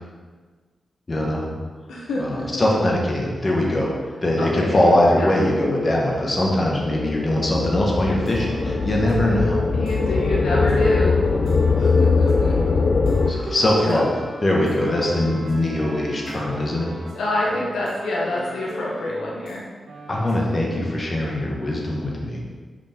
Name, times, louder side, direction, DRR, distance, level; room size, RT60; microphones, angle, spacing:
voice 1, 1.1-1.5 2.2-3.9 4.2-9.6 13.3-14.1 14.4-16.9 20.1-22.4, left 1 dB, 40° left, -2 dB, 1.4 m, -21 dB
voice 2, 1.9-2.6 4.4-4.7 5.2-5.3 9.7-11.1 11.8-12.8 13.8-14.0 17.1-19.6, left 1 dB, 90° left, -4 dB, 0.9 m, -26 dB
sound 1, 6.3-13.3, left 4 dB, 60° left, 0.4 m, -21 dB
sound 2, 8.2-19.6 19.9-20.5, right 1 dB, 85° right, 1.0 m, -37 dB
5.2 x 5.2 x 3.5 m, 1.4 s
cardioid pair, 55°, 0 cm